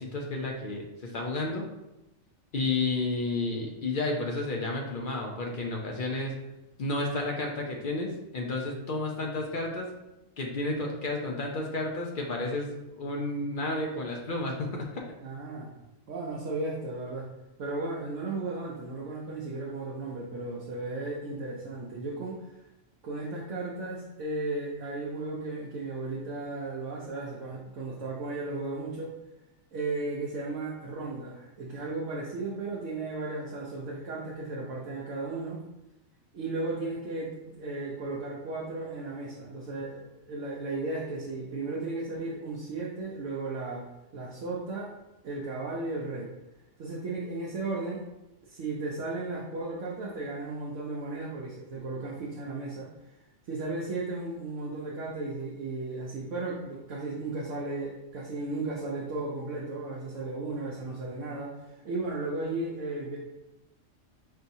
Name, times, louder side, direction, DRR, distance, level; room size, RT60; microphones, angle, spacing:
voice 1, 0.0-1.7 2.5-6.3 6.8-9.9 10.4-15.0, left 2 dB, 60° left, 0 dB, 0.5 m, -31 dB
voice 2, 15.2-15.7 16.1-17.3 17.6-22.5 23.0-29.1 29.7-35.6 36.3-43.9 44.1-44.9 45.2-46.3 46.8-48.0 48.4-52.9 53.5-63.2, right 3 dB, 70° right, -5 dB, 1.0 m, -35 dB
5.3 x 2.8 x 2.6 m, 0.97 s
omnidirectional pair, 1.4 m